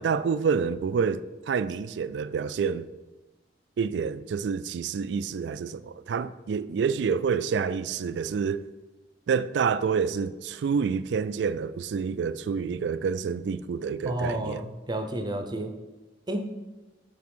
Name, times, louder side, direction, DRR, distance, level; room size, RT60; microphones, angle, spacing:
voice 1, 0.0-2.9 3.8-8.7 9.3-14.7, right 6 dB, 70° right, 0.3 m, -28 dB
voice 2, 14.0-15.7 16.3-16.5, right 1 dB, 25° right, 0.6 m, -31 dB
6.0 x 4.1 x 6.1 m
head